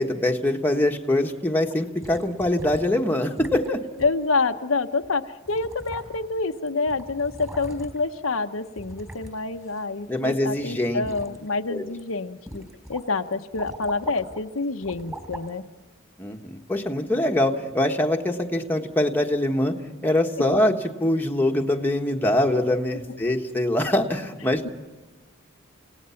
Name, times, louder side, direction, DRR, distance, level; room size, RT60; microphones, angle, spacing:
voice 1, 0.0-3.8 10.1-11.0 11.7-11.8 16.2-19.7 20.0-24.7, left 1 dB, 10° left, 2 dB, 1.4 m, -23 dB
sound 1, 2.0-3.0 3.4-3.7 4.0-4.1 5.0-5.1 5.5-6.4 6.7-8.1 8.8-10.3 10.6-11.4 11.8-12.0 12.5-13.0 13.3-14.4 14.8-15.5 16.2-16.3, right 1 dB, 15° right, 4.0 m, -40 dB
voice 2, 4.0-15.6 24.6-24.7, left 3 dB, 85° left, 7 dB, 0.9 m, -27 dB
29.5 x 17.5 x 5.8 m, 1.2 s
head